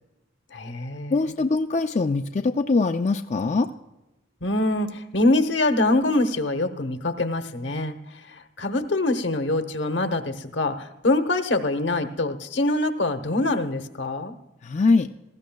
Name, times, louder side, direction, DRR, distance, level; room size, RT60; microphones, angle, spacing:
voice 1, 0.5-1.3 4.4-8.0 8.3-14.4, left 2 dB, 75° left, 9 dB, 1.0 m, -24 dB
voice 2, 1.1-3.7 14.6-15.1, left 3 dB, 40° left, 5 dB, 0.4 m, -22 dB
19.0 x 15.0 x 2.3 m, 1.0 s
head